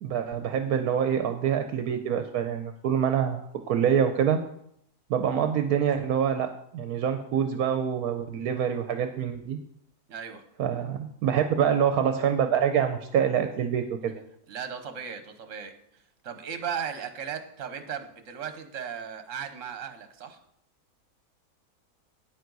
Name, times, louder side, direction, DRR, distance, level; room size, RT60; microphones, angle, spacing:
voice 1, 0.0-4.4 5.1-9.6 10.6-14.2, right 8 dB, 75° right, 7 dB, 1.1 m, -26 dB
voice 2, 10.1-10.4 14.5-20.4, right 7 dB, 55° right, 8 dB, 1.3 m, -37 dB
9.3 x 9.2 x 4.0 m, 0.72 s
omnidirectional pair, 1.6 m